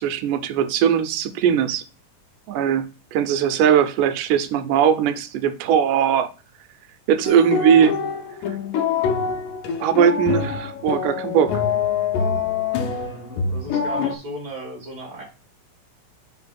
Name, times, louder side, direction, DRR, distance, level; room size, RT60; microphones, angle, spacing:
voice 1, 0.0-1.8 2.5-6.3 7.1-8.0 9.8-11.6, right 8 dB, 75° right, 2.1 m, -19 dB
sound 1, 7.3-14.2, left 6 dB, 80° left, 2.2 m, -25 dB
voice 2, 13.0-15.2, right 1 dB, 40° right, 1.5 m, -36 dB
4.4 x 4.3 x 5.8 m
omnidirectional pair, 4.0 m